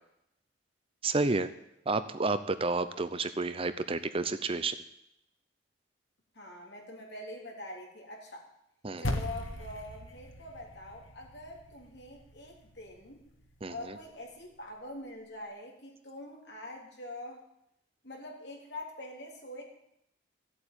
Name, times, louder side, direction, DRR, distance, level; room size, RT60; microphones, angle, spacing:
voice 1, 1.0-1.5 1.9-4.8 8.8-9.0 13.6-14.0, right 3 dB, 30° right, 12 dB, 0.6 m, -30 dB
voice 2, 6.3-8.5 9.0-13.2 13.7-17.4 18.0-19.6, left 1 dB, 60° left, 0 dB, 3.5 m, -44 dB
sound 1, 9.0-13.6, left 1 dB, 85° left, 1.8 m, -39 dB
14.5 x 8.3 x 8.9 m, 0.81 s
head